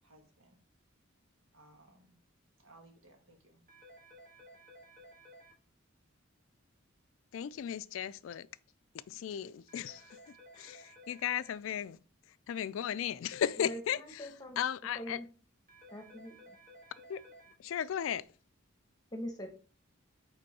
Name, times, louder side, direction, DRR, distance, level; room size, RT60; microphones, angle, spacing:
voice 1, 0.0-0.6 1.5-2.2 2.6-3.6, right 2 dB, 80° right, 1.6 m, -61 dB
sound 1, 3.7-5.5 9.7-11.5 15.7-17.5, equal, 40° right, 1.4 m, -56 dB
voice 2, 7.3-8.5 9.1-12.0 12.5-14.3 14.6-15.2 17.1-17.2 17.6-18.3, left 9 dB, 75° left, 0.3 m, -36 dB
voice 3, 13.6-14.6 14.9-15.3 15.9-16.5 19.1-19.5, equal, 20° left, 1.0 m, -43 dB
5.3 x 4.3 x 4.1 m
head